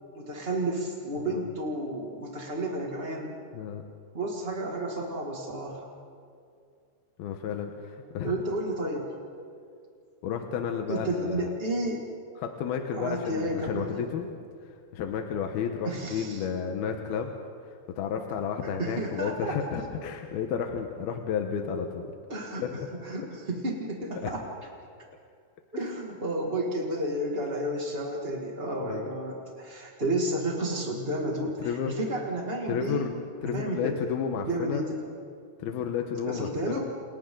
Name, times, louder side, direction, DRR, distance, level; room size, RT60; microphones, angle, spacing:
voice 1, 0.1-3.3 4.1-5.9 8.2-9.1 10.9-12.0 12.9-13.9 15.8-16.5 18.8-19.6 22.3-24.4 25.7-33.1 33.4-34.0 34.4-35.0 36.2-36.8, right 1 dB, 30° right, -2 dB, 1.0 m, -31 dB
voice 2, 7.2-8.3 10.2-11.5 12.4-14.3 14.9-17.3 17.6-22.1 22.6-22.9 24.2-24.3 28.8-29.1 31.6-32.0 32.7-33.1 33.4-34.8 35.6-36.8, left 7 dB, 70° left, 4 dB, 2.8 m, -32 dB
30.0 x 29.5 x 3.9 m, 2.3 s
omnidirectional pair, 5.1 m